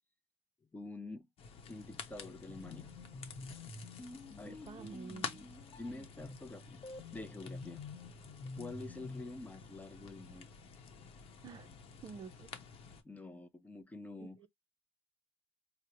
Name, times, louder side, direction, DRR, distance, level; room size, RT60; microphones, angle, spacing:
voice 1, 0.7-1.3 1.7-2.9 4.4-4.6 5.8-6.8 7.1-7.8 8.6-10.5 13.0-14.4, left 2 dB, 15° left, 0.5 m, -47 dB
sound 1, 1.4-13.0, left 6 dB, 55° left, 0.8 m, -50 dB
sound 2, 2.5-9.3, left 3 dB, 35° left, 1.2 m, -49 dB
voice 2, 4.4-5.5 11.4-11.7 12.0-12.5 14.2-14.5, right 5 dB, 40° right, 0.5 m, -49 dB
4.6 x 2.0 x 2.9 m
cardioid pair, 130°, 11 cm